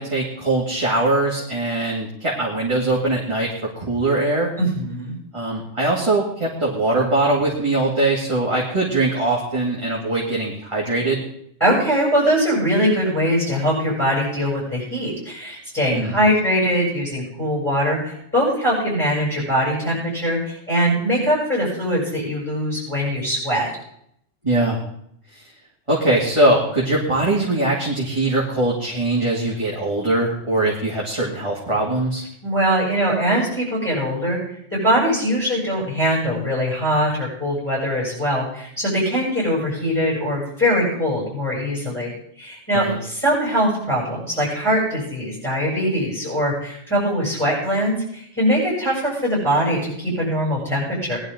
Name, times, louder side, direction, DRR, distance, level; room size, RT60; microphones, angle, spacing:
voice 1, 0.0-4.5 5.3-11.2 15.9-16.1 24.4-24.8 25.3-25.5 25.9-32.2 42.7-43.0, right 2 dB, 25° right, -5 dB, 2.4 m, -21 dB
voice 2, 4.6-5.2 11.6-23.7 32.4-34.4 34.7-42.1 42.4-51.2, equal, 10° left, -6 dB, 7.5 m, -22 dB
19.5 x 11.5 x 3.9 m, 0.71 s
omnidirectional pair, 1.3 m